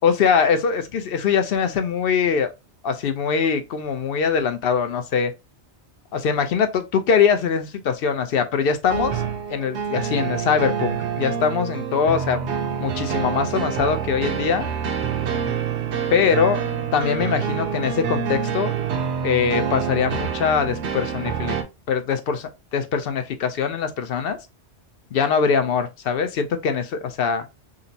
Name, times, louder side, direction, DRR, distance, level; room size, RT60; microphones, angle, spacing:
voice 1, 0.0-2.5 2.8-5.3 6.1-9.2 9.5-12.5 12.8-14.7 16.1-16.6 16.9-18.8 19.2-21.6 21.9-24.4 25.1-27.5, left 6 dB, 60° left, 0.7 m, -22 dB
sound 1, 8.9-21.6, right 7 dB, 75° right, 0.9 m, -27 dB
5.1 x 2.0 x 2.6 m
omnidirectional pair, 1.2 m